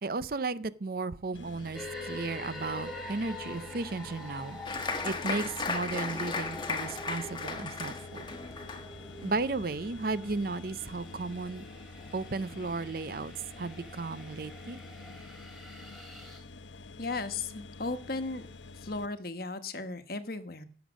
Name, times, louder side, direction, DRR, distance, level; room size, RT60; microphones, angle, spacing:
voice 1, 0.0-4.6 5.0-8.2 9.2-11.6 12.1-14.8, right 3 dB, 50° right, 16 dB, 0.6 m, -34 dB
sound 1, 1.3-19.1, left 3 dB, 85° left, 0.9 m, -48 dB
sound 2, 1.7-16.4, left 2 dB, ahead, 3.0 m, -46 dB
Applause, 4.6-11.7 12.0-12.7 13.1-13.2 13.5-14.0, left 4 dB, 25° left, 1.2 m, -37 dB
voice 2, 17.0-18.5 18.8-20.6, left 3 dB, 50° left, 10 dB, 1.2 m, -36 dB
16.5 x 7.2 x 6.3 m, 0.43 s
head